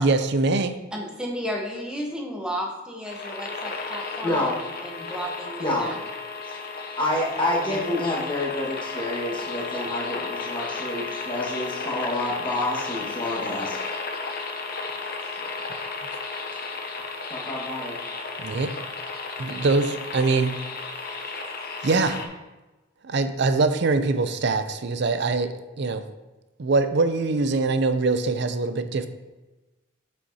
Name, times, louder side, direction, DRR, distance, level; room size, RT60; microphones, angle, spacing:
voice 1, 0.0-0.8 18.4-18.7 19.4-20.6 21.8-22.2 23.0-26.0 26.6-29.1, right 3 dB, 55° right, 10 dB, 0.5 m, -23 dB
voice 2, 0.9-6.0 7.7-7.8, equal, 5° right, -1 dB, 1.0 m, -33 dB
static noise several different ones, 3.1-22.3, left 4 dB, 45° left, 0.8 m, -34 dB
voice 3, 4.2-4.6 5.6-5.9 6.5-6.6 7.0-13.8 17.3-18.0, left 1 dB, 25° left, -5 dB, 1.6 m, -28 dB
7.6 x 6.4 x 2.8 m, 1.1 s
head